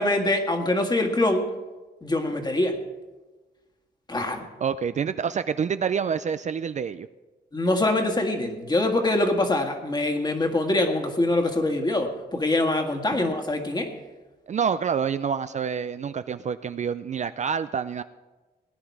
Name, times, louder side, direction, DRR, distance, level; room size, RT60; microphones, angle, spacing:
voice 1, 0.0-1.5 2.0-2.8 4.1-4.5 7.5-13.9, left 2 dB, 25° left, 4 dB, 1.7 m, -24 dB
voice 2, 4.6-7.1 14.5-18.0, right 7 dB, 45° right, 12 dB, 0.4 m, -27 dB
18.0 x 10.0 x 4.7 m, 1.2 s
cardioid pair, 110°, 17 cm